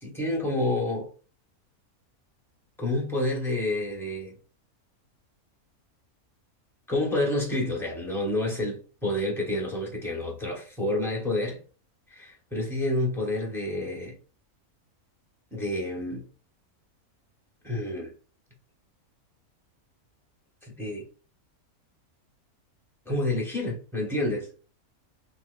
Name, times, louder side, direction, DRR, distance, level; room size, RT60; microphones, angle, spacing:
voice 1, 0.0-1.1 2.8-4.4 6.9-11.6 12.1-14.1 15.5-16.2 17.6-18.1 20.7-21.0 23.0-24.5, left 1 dB, ahead, 0.9 m, -29 dB
3.7 x 2.8 x 2.5 m
omnidirectional pair, 1.5 m